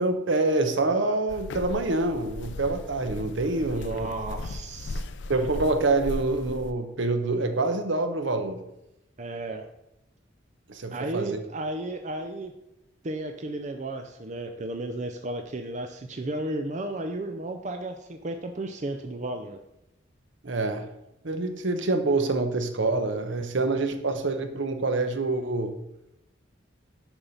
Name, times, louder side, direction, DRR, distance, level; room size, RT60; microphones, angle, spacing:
voice 1, 0.0-4.1 5.3-8.6 10.7-11.4 20.4-20.9 21.2-25.7, right 2 dB, 70° right, 8 dB, 0.9 m, -26 dB
sound 1, 1.3-6.7, left 2 dB, 60° left, 0.5 m, -37 dB
voice 2, 3.7-5.0 9.2-9.7 10.9-12.5 13.0-19.6, right 2 dB, 35° right, 5 dB, 0.5 m, -33 dB
7.1 x 5.4 x 5.4 m, 0.88 s
head